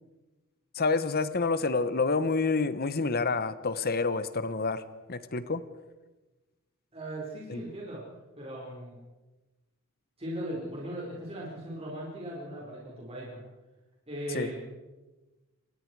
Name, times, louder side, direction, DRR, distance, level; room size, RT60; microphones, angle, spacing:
voice 1, 0.7-4.8 5.1-5.6 7.5-7.6 14.3-14.5, left 4 dB, 45° left, 14 dB, 1.1 m, -28 dB
voice 2, 6.9-8.0 8.4-9.0 10.2-13.4 14.1-14.6, right 1 dB, 30° right, -4 dB, 5.1 m, -38 dB
27.5 x 21.0 x 4.8 m, 1.2 s
head